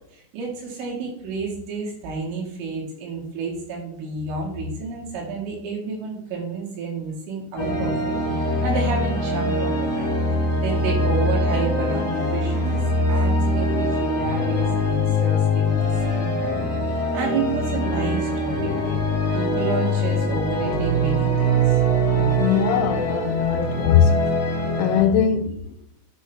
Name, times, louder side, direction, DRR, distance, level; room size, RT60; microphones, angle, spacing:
voice 1, 0.0-10.1 10.6-12.8 13.1-19.0 19.3-21.8 22.1-22.4, right 4 dB, 75° right, 4.5 m, -30 dB
sound 1, 7.6-25.0, equal, 40° left, 2.5 m, -23 dB
voice 2, 22.4-24.2 24.8-25.6, left 8 dB, 85° left, 2.9 m, -20 dB
10.0 x 6.3 x 3.4 m
omnidirectional pair, 5.7 m